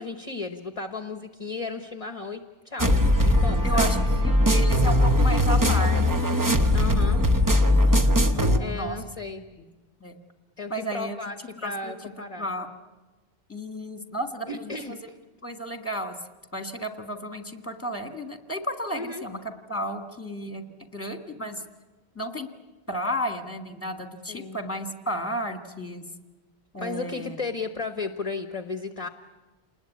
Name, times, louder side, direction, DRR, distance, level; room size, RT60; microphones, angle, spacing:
voice 1, 0.0-3.9 6.7-7.2 8.6-9.4 10.6-11.4 11.6-12.5 14.5-15.2 18.9-19.2 24.3-24.6 26.8-29.1, left 3 dB, 35° left, 7 dB, 1.1 m, -34 dB
sound 1, 2.8-8.6, left 1 dB, 20° right, 0.9 m, -20 dB
voice 2, 3.6-6.2 8.3-9.0 10.0-10.2 10.7-11.2 11.6-12.0 12.4-12.7 13.5-15.0 15.4-16.2 16.5-21.6 22.2-22.5 22.9-26.0 26.7-27.4, right 1 dB, 10° left, 5 dB, 1.7 m, -33 dB
28.5 x 20.5 x 8.5 m, 1.2 s
omnidirectional pair, 1.1 m